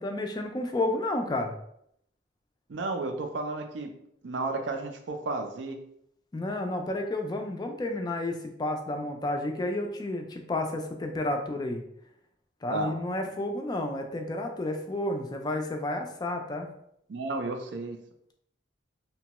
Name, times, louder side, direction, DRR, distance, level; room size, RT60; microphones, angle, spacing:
voice 1, 0.0-1.5 6.3-11.8 12.6-16.7, left 1 dB, 20° left, 3 dB, 0.3 m, -31 dB
voice 2, 2.7-3.9 4.2-5.8 12.7-13.0 17.1-18.0, right 3 dB, 70° right, 5 dB, 0.4 m, -32 dB
2.9 x 2.2 x 2.9 m, 0.71 s
head